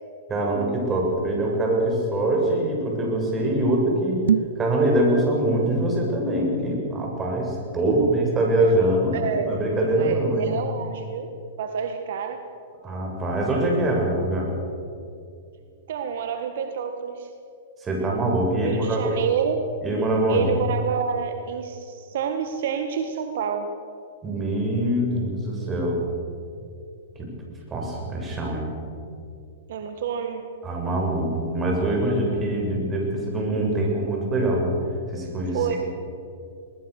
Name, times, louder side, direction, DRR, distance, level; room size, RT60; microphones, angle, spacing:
voice 1, 0.3-4.2 4.6-10.5 12.8-14.5 17.8-19.2 19.8-20.5 24.2-26.0 27.2-27.3 27.7-28.7 30.6-34.8 35.1-35.8, right 1 dB, 20° right, 0 dB, 7.0 m, -24 dB
sound 1, 4.2-4.7, right 8 dB, 80° right, 0.5 m, -23 dB
voice 2, 9.1-9.6 9.9-11.3 11.6-12.4 15.9-17.3 18.5-19.6 20.3-23.7 29.7-30.5 35.5-35.8, right 7 dB, 65° right, 6 dB, 1.7 m, -28 dB
21.5 x 20.5 x 6.6 m, 2.5 s
hypercardioid pair, 125°, 0 cm